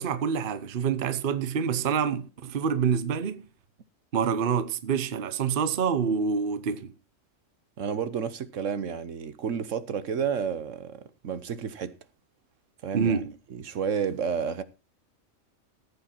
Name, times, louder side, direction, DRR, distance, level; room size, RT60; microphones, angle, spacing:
voice 1, 0.0-3.4 4.1-6.9 12.9-13.3, right 6 dB, 50° right, 1.0 m, -27 dB
voice 2, 7.8-12.0 12.8-13.2 13.5-14.6, right 7 dB, 75° right, 1.3 m, -31 dB
14.0 x 8.7 x 4.3 m
omnidirectional pair, 1.3 m